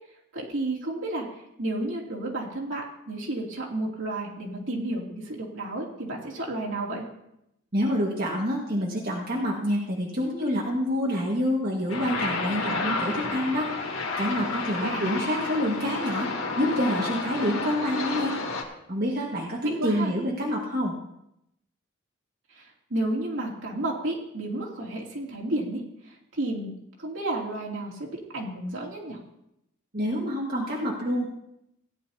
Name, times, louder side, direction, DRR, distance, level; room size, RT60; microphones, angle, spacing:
voice 1, 0.3-1.3 1.6-7.0 14.8-15.2 19.6-20.1 22.6-22.7 22.9-25.8 26.3-26.7 27.0-29.2, right 1 dB, 75° right, -3 dB, 2.8 m, -31 dB
voice 2, 7.7-13.7 14.2-16.3 16.6-18.3 18.9-20.9 29.9-31.3, equal, 50° right, -3 dB, 1.8 m, -27 dB
sound 1, 11.9-18.6, left 3 dB, 75° left, 2.0 m, -31 dB
17.0 x 10.5 x 2.8 m, 0.80 s
head